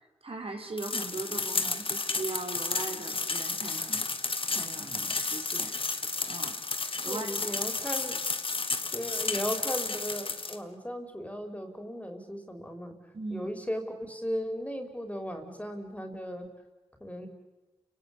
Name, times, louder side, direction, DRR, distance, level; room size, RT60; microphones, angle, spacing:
voice 1, 0.2-4.0 4.5-5.7 6.3-6.5 7.0-7.6 13.1-13.5, right 3 dB, 55° right, 3 dB, 4.6 m, -39 dB
sound 1, 0.8-10.6, left 3 dB, 50° left, 2.1 m, -32 dB
voice 2, 7.1-8.3 8.9-12.9 13.3-16.5 17.0-17.3, equal, 10° left, 6 dB, 5.5 m, -36 dB
30.0 x 18.5 x 10.0 m, 1.2 s
cardioid pair, 40°, 11 cm